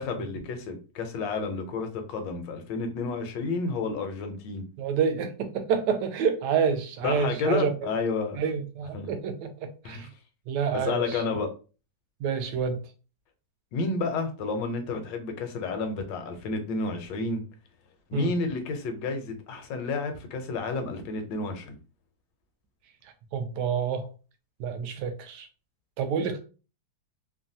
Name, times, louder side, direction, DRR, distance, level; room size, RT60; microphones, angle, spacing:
voice 1, 0.0-4.6 7.0-8.4 8.9-9.1 9.8-10.1 10.7-11.5 13.7-17.4 18.1-21.8, left 3 dB, 75° left, 1.3 m, -31 dB
voice 2, 4.8-7.7 8.4-10.1 10.5-11.2 12.2-12.8 18.1-18.3 23.3-24.1 24.6-25.5 26.0-26.4, right 6 dB, 75° right, 1.1 m, -28 dB
3.1 x 2.2 x 2.6 m
omnidirectional pair, 2.0 m